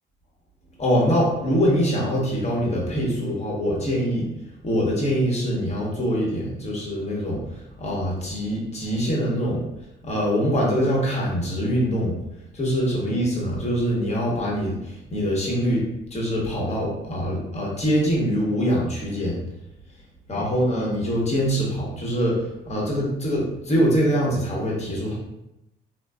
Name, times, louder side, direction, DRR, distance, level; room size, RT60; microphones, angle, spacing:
voice 1, 0.8-4.3 4.6-9.6 10.0-12.2 12.5-19.4 20.3-25.1, equal, 35° left, -4 dB, 1.0 m, -24 dB
3.2 x 2.2 x 2.3 m, 0.87 s
cardioid pair, 90°, 20 cm